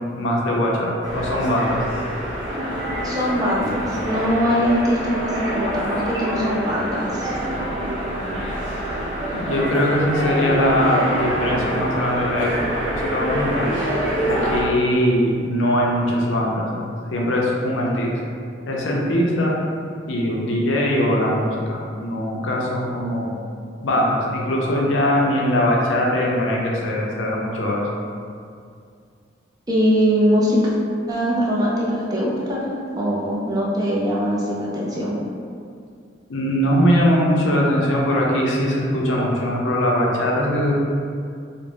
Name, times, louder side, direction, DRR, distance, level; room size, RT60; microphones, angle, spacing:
voice 1, 0.1-1.9 9.3-13.7 14.2-16.7 17.1-18.2 18.7-19.5 20.1-23.4 23.8-27.9 36.3-40.8, equal, 80° left, -2 dB, 0.5 m, -21 dB
sound 1, 1.0-14.6, right 1 dB, 75° right, 0.7 m, -26 dB
voice 2, 3.0-7.3 29.7-30.7 31.1-35.2, equal, 20° right, -6 dB, 0.4 m, -22 dB
2.5 x 2.0 x 3.2 m, 2.3 s
head